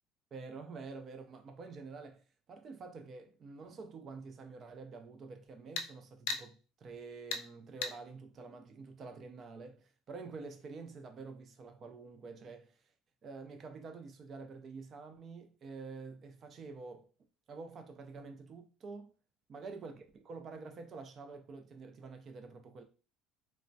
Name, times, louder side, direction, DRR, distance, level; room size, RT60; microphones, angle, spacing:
voice 1, 0.3-2.2 2.5-12.8 13.2-17.1 17.5-19.1 19.5-22.8, right 4 dB, 30° right, 0.4 m, -48 dB
sound 1, 1.4-1.5 5.8-5.9 6.3-6.5 7.3-7.5 7.8-8.0, left 4 dB, 85° left, 0.5 m, -36 dB
3.2 x 2.1 x 2.6 m
cardioid pair, 170°, 0 cm